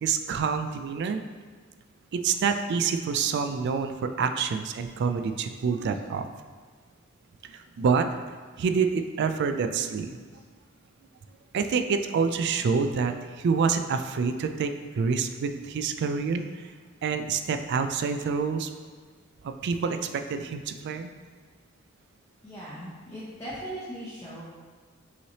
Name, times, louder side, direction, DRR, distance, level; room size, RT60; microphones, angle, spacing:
voice 1, 0.0-1.2 2.1-6.3 7.5-8.1 8.6-10.2 11.5-16.7 17.0-18.7 19.4-21.1, right 5 dB, 55° right, 8 dB, 0.3 m, -27 dB
voice 2, 22.4-24.4, right 1 dB, 15° left, -10 dB, 0.8 m, -39 dB
5.5 x 3.1 x 2.8 m, 1.5 s
head